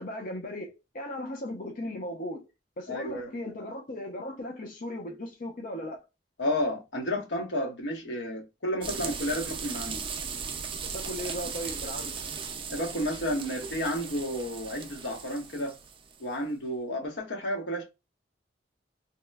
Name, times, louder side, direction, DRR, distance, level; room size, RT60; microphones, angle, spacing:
voice 1, 0.0-2.5 2.8-6.0 10.8-12.2, left 1 dB, 50° left, 0.6 m, -37 dB
voice 2, 2.9-3.5 6.4-10.0 12.7-15.7 16.2-17.8, equal, 90° left, 1.0 m, -31 dB
sound 1, 8.8-16.2, right 6 dB, 30° right, 0.3 m, -37 dB
2.9 x 2.1 x 2.2 m
head